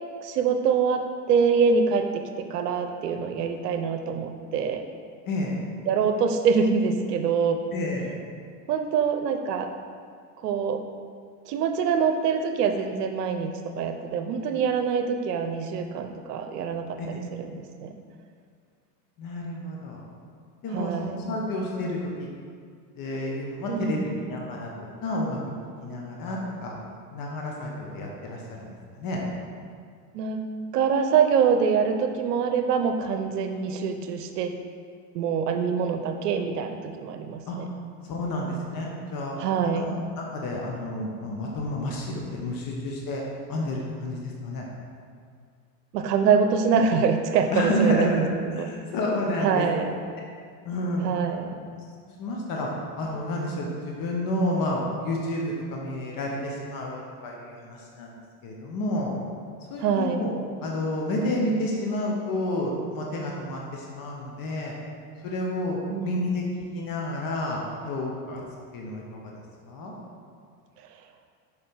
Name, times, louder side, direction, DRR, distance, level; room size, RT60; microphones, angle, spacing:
voice 1, 0.2-4.8 5.9-7.6 8.7-9.7 10.4-10.8 11.5-17.9 20.7-21.3 23.7-24.1 30.1-30.4 30.7-34.5 35.1-37.7 39.4-40.0 45.9-48.2 48.5-48.7 49.4-49.9 51.0-51.6 59.8-60.3 65.9-66.6, right 6 dB, 80° right, 6 dB, 0.8 m, -25 dB
voice 2, 5.3-5.6 7.7-8.1 17.0-17.2 19.2-20.0 20.6-22.3 23.0-25.4 25.8-26.8 27.1-28.7 29.0-29.2 37.5-37.6 38.1-39.4 40.3-43.2 43.5-44.6 47.5-49.7 50.6-51.1 52.2-58.1 58.4-59.1 59.7-60.3 60.6-64.7 65.2-66.4 66.7-68.4 68.7-69.3 69.7-69.9, left 1 dB, 45° left, -1 dB, 1.4 m, -30 dB
6.6 x 5.0 x 5.5 m, 2.1 s
hypercardioid pair, 90°, 47 cm